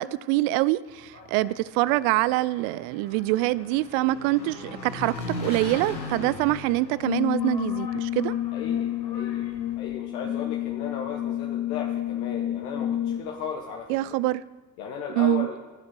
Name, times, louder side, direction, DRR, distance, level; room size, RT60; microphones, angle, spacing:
voice 1, 0.0-5.1 5.4-8.3 13.9-14.4 15.1-15.5, right 17 dB, 45° right, 19 dB, 0.4 m, -25 dB
Engine, 0.9-9.7, left 2 dB, 85° left, 1.6 m, -39 dB
Brass instrument, 7.0-13.4, left 12 dB, 20° left, 0.3 m, -29 dB
voice 2, 8.5-14.0 14.8-15.6, left 7 dB, 60° left, 1 dB, 1.3 m, -36 dB
14.5 x 6.5 x 5.9 m, 1.3 s
figure-of-eight pair, 55°, 50 cm